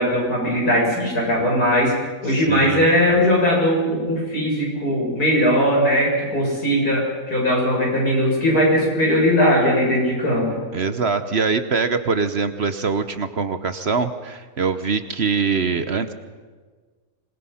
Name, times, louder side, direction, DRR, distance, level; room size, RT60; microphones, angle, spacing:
voice 1, 0.0-1.9 2.2-10.6, equal, 85° left, -2 dB, 7.8 m, -19 dB
voice 2, 2.3-2.8 10.7-16.1, right 5 dB, 50° right, 10 dB, 1.1 m, -23 dB
25.5 x 21.0 x 5.8 m, 1.4 s
omnidirectional pair, 1.6 m